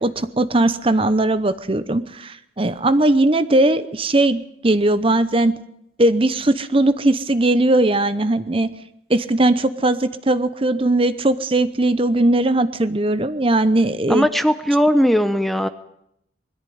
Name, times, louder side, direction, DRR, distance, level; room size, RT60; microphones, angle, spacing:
voice 1, 0.0-5.5 6.0-8.7 9.1-14.3, right 2 dB, 30° right, 13 dB, 0.8 m, -19 dB
voice 2, 14.1-15.7, equal, ahead, 10 dB, 0.8 m, -18 dB
21.5 x 14.0 x 9.4 m, 0.78 s
head